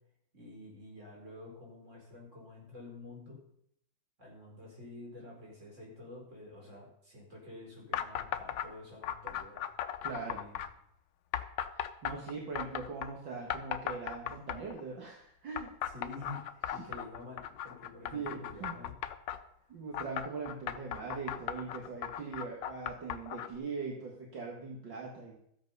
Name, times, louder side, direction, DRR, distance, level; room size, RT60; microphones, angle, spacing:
voice 1, 0.3-3.4 4.2-9.7 10.1-10.6 15.9-18.9 19.6-19.7, left 2 dB, 35° right, -2 dB, 4.9 m, -49 dB
sound 1, 7.9-8.7 9.0-10.7 11.3-13.1 13.5-14.8 15.6-19.4 19.9-23.5, left 10 dB, 70° left, 1.4 m, -37 dB
voice 2, 10.0-10.3 12.0-15.7 18.1-18.8 19.7-25.4, right 4 dB, 65° right, -1 dB, 2.4 m, -41 dB
14.0 x 8.3 x 5.5 m, 0.72 s
omnidirectional pair, 2.2 m